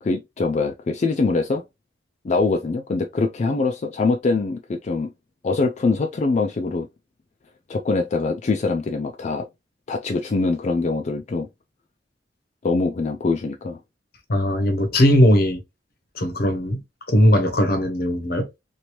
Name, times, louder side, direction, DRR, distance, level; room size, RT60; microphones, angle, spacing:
voice 1, 0.0-1.6 2.2-5.1 5.4-6.9 7.7-9.5 9.9-11.5 12.6-13.8, left 3 dB, 40° left, 0.3 m, -23 dB
voice 2, 14.3-15.6 16.1-16.8 17.1-18.5, equal, 55° left, 0.8 m, -18 dB
3.0 x 2.6 x 3.0 m
head